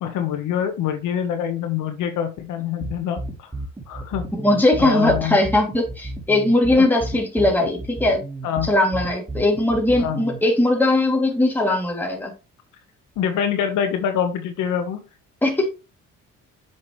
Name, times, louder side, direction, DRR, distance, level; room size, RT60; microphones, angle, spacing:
voice 1, 0.0-3.5 3.9-4.3 4.8-5.4 6.8-6.9 8.4-8.7 10.0-10.2 13.2-15.0, left 8 dB, 85° left, 6 dB, 1.3 m, -25 dB
sound 1, 2.8-10.4, right 2 dB, 15° right, 2.1 m, -32 dB
voice 2, 4.4-8.2 8.6-12.3 15.4-15.7, left 2 dB, 5° left, 0 dB, 2.7 m, -19 dB
7.4 x 6.2 x 3.2 m, 0.28 s
cardioid pair, 90°, 30 cm